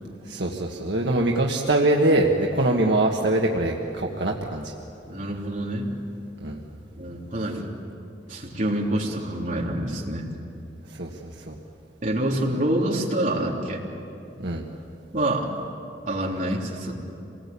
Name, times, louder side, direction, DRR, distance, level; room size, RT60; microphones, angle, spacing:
voice 1, 0.2-4.7 6.4-6.6 10.9-11.5 14.4-14.6, right 2 dB, 70° right, -1 dB, 1.7 m, -23 dB
voice 2, 5.1-5.9 7.0-7.7 8.3-10.3 12.0-13.8 15.1-15.5 16.1-16.9, right 1 dB, 45° right, -3 dB, 3.5 m, -26 dB
27.5 x 20.0 x 8.6 m, 2.8 s
head